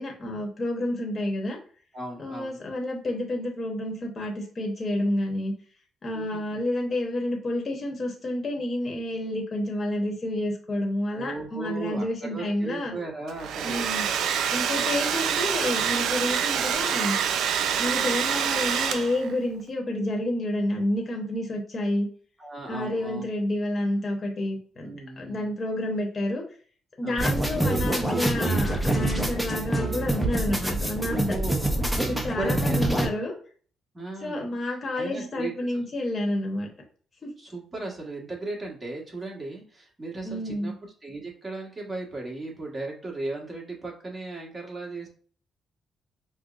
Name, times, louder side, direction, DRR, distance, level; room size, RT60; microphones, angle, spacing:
voice 1, 0.0-1.6 2.2-5.5 6.0-12.9 13.6-14.0 14.5-17.2 17.8-22.1 22.7-26.4 27.0-31.3 32.1-33.3 34.2-36.7 37.2-37.3 40.2-40.7, left 1 dB, 40° left, 1 dB, 1.0 m, -29 dB
voice 2, 1.9-2.6 6.1-6.6 11.1-13.9 22.4-23.2 24.8-25.5 27.0-27.3 31.1-33.3 33.9-34.4 34.9-35.8 37.4-40.7 41.0-45.1, right 2 dB, 25° right, -1 dB, 1.4 m, -36 dB
Domestic sounds home sounds, 13.3-19.3, right 8 dB, 75° right, 0.3 m, -26 dB
sound 1, 27.2-33.1, right 1 dB, 5° right, 0.8 m, -26 dB
5.4 x 2.1 x 2.5 m, 0.43 s
cardioid pair, 90°, 0 cm